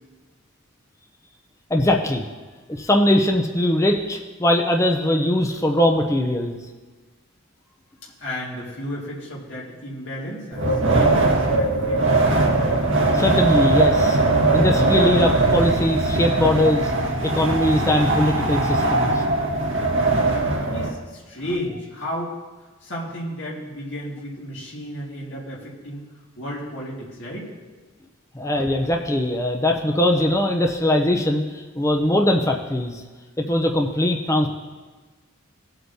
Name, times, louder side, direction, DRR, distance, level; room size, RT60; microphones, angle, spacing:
voice 1, 1.7-2.2 2.7-6.6 13.1-14.2 14.5-16.9 17.2-19.2 28.3-33.0 33.4-34.5, left 1 dB, 15° left, 2 dB, 0.6 m, -21 dB
voice 2, 8.0-12.1 20.6-22.3 22.8-26.1 26.4-27.5, equal, 60° left, -5 dB, 2.0 m, -33 dB
Wind, 10.5-20.9, right 2 dB, 70° right, 1.6 m, -20 dB
17.5 x 8.0 x 2.7 m, 1.3 s
head